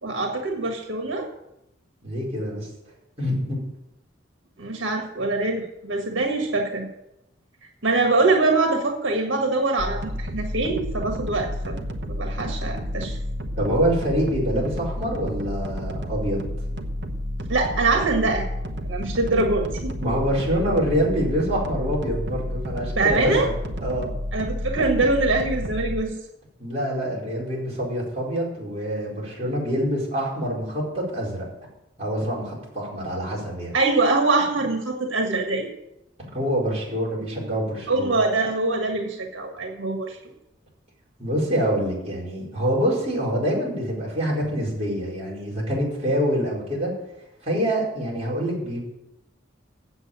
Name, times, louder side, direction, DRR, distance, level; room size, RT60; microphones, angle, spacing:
voice 1, 0.0-1.3 4.6-6.9 7.8-11.8 12.1-13.2 17.5-18.4 18.9-19.9 22.9-23.5 24.3-26.1 33.7-35.7 37.9-40.2, right 3 dB, 90° right, 3 dB, 1.6 m, -23 dB
voice 2, 2.0-2.7 3.2-3.6 13.6-16.4 20.0-23.5 23.8-24.1 26.6-31.5 32.0-33.7 36.2-38.1 41.2-46.9 47.4-48.8, equal, 35° right, -5 dB, 4.8 m, -26 dB
sound 1, 9.8-26.0, equal, 65° right, 1.1 m, -30 dB
8.1 x 7.9 x 8.7 m, 0.86 s
head